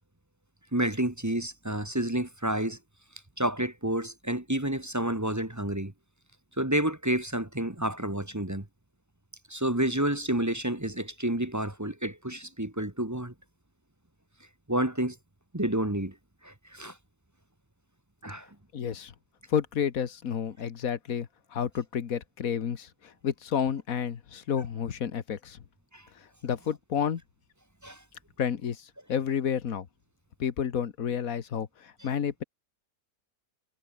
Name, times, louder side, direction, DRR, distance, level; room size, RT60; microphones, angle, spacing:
voice 1, 0.7-2.8 3.4-5.9 6.6-8.7 9.5-13.3 14.7-15.2 15.5-16.1 16.4-17.0 18.2-18.5 25.9-26.0 27.8-28.0, right 1 dB, 10° right, 1.4 m, -29 dB
voice 2, 18.7-19.1 19.5-25.6 26.4-27.2 28.4-29.9 30.4-32.4, left 8 dB, 65° left, 1.7 m, -30 dB
omnidirectional pair, 1.6 m